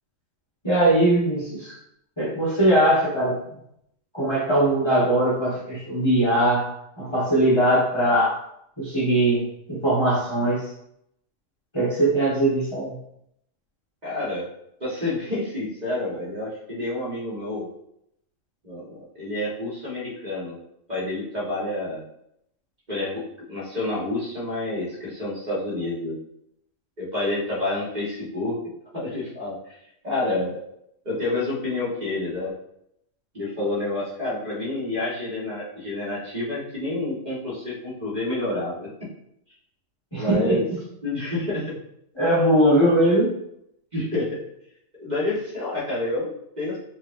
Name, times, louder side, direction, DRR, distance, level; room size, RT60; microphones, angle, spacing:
voice 1, 0.6-1.7 2.2-3.4 4.1-6.7 7.0-8.3 8.8-9.4 9.7-10.6 11.7-12.9 40.1-40.5 42.2-43.3, right 1 dB, 20° left, -8 dB, 1.4 m, -20 dB
voice 2, 14.0-14.5 14.8-17.7 18.6-20.6 20.9-22.0 22.9-26.2 27.0-28.6 28.9-29.8 30.0-30.6 31.0-32.5 33.3-38.9 40.2-40.6 41.0-41.7 43.9-44.4 45.0-46.8, left 2 dB, 35° right, -8 dB, 1.5 m, -28 dB
5.4 x 3.0 x 2.6 m, 0.76 s
omnidirectional pair, 1.4 m